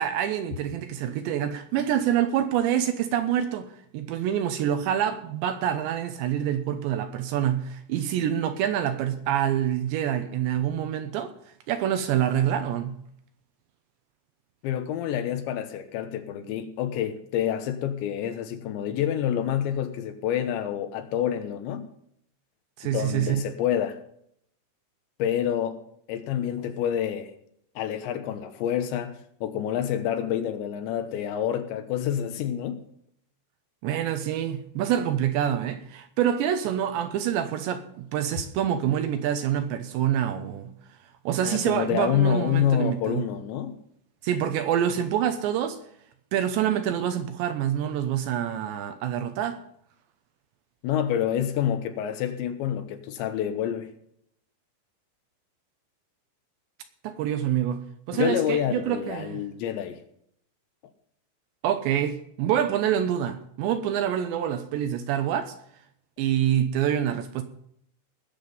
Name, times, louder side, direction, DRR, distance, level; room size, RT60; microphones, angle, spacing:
voice 1, 0.0-11.3 11.7-13.0 22.8-23.4 33.8-40.7 41.3-43.2 44.2-45.8 46.3-49.6 57.0-59.4 61.6-65.5 66.2-67.4, right 10 dB, 80° right, 2.9 m, -26 dB
voice 2, 14.6-21.9 22.8-24.0 25.2-25.8 26.1-27.3 27.8-32.8 41.4-43.8 50.8-53.9 58.1-60.0, left 10 dB, 75° left, 3.1 m, -28 dB
20.0 x 7.4 x 5.3 m
omnidirectional pair, 5.7 m